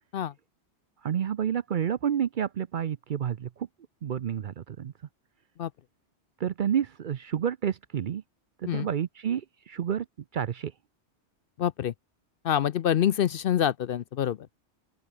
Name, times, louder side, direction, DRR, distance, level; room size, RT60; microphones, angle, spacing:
voice 1, 1.0-3.7 4.0-4.9 6.4-8.2 8.6-10.1 10.3-10.7, right 9 dB, 55° right, 0.7 m, -29 dB
voice 2, 11.6-11.9 12.4-14.5, left 10 dB, 60° left, 0.7 m, -26 dB
open air
omnidirectional pair, 1.2 m